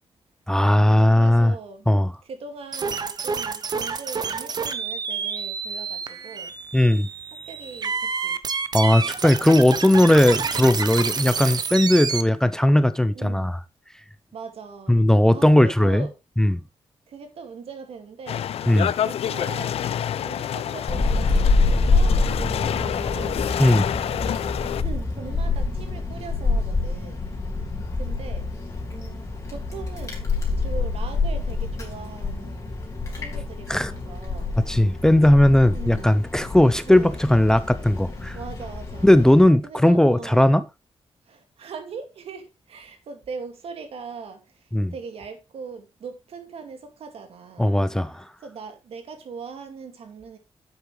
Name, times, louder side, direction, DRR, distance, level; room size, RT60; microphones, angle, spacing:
voice 1, 0.5-1.5 1.9-2.1 6.7-7.1 8.7-13.6 14.9-16.1 16.4-16.6 18.7-18.9 23.6-23.9 33.7-33.9 34.6-38.4 39.0-40.6 44.7-44.9 47.6-48.3, left 1 dB, 5° left, 0.5 m, -18 dB
voice 2, 1.1-1.9 2.2-6.5 7.5-8.4 10.5-10.7 13.1-13.5 14.3-15.0 15.3-16.1 17.1-18.5 19.0-19.8 20.2-23.5 24.1-24.2 24.8-27.2 28.0-28.5 28.9-30.2 30.6-32.7 33.1-34.5 35.7-36.2 36.9-37.2 38.3-39.1 39.6-40.5 41.3-44.6 44.9-47.8 48.4-50.4, right 5 dB, 75° right, 2.3 m, -40 dB
sound 1, 2.7-12.2, right 5 dB, 40° right, 0.9 m, -29 dB
sound 2, 18.3-24.8, left 10 dB, 85° left, 0.5 m, -28 dB
Wind, 20.9-39.4, left 3 dB, 30° left, 3.2 m, -26 dB
10.5 x 8.0 x 3.3 m
wide cardioid pair, 165°, 10 cm